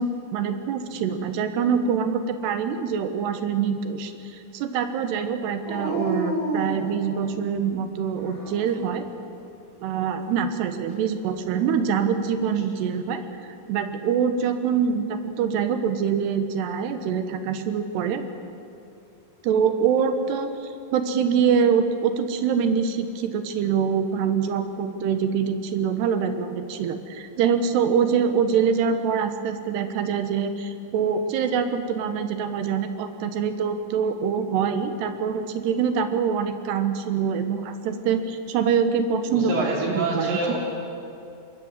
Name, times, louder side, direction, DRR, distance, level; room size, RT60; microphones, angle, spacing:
voice 1, 0.0-9.1 9.8-13.2 13.7-18.2 19.4-40.6, right 7 dB, 85° right, 9 dB, 3.4 m, -24 dB
Dog, 5.6-7.5 8.2-9.0 11.2-12.1, right 1 dB, 30° left, 6.8 m, -31 dB
voice 2, 39.3-40.6, right 2 dB, 55° right, -2 dB, 5.7 m, -26 dB
25.5 x 21.0 x 7.5 m, 2.6 s
omnidirectional pair, 4.7 m